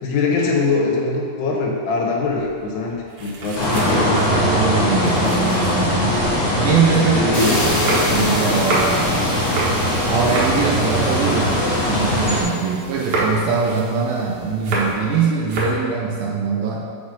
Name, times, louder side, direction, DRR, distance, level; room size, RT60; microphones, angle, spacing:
voice 1, 0.0-4.1 7.1-7.6, left 3 dB, 85° left, -1 dB, 3.1 m, -22 dB
sound 1, 2.2-6.3 6.7-12.5 12.8-15.1 15.4-15.9, right 2 dB, 60° right, 2.2 m, -28 dB
sound 2, 3.5-12.4, left 1 dB, 60° left, 0.6 m, -20 dB
voice 2, 3.8-9.1 10.1-11.5 11.9-16.9, right 5 dB, 80° right, -1 dB, 2.2 m, -22 dB
sound 3, 7.3-14.2, left 1 dB, 40° left, 1.0 m, -30 dB
7.2 x 5.1 x 5.2 m, 2.2 s
omnidirectional pair, 4.6 m